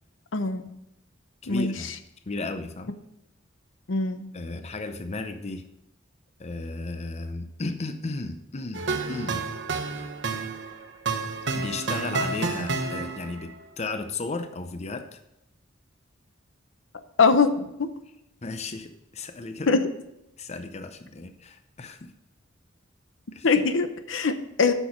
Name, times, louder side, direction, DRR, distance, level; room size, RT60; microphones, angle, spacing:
voice 1, 0.3-0.6 1.5-1.7 3.9-4.2 17.2-17.9 19.7-19.9 23.4-24.7, left 4 dB, 75° left, 10 dB, 0.8 m, -22 dB
voice 2, 1.4-1.9 2.3-2.9 4.3-5.6 6.4-9.5 11.5-15.2 18.4-19.8 20.4-22.1 23.3-23.5, left 3 dB, 35° left, 9 dB, 0.6 m, -34 dB
sound 1, 8.7-13.4, right 4 dB, 65° right, 1.0 m, -30 dB
8.9 x 6.2 x 6.3 m, 0.86 s
head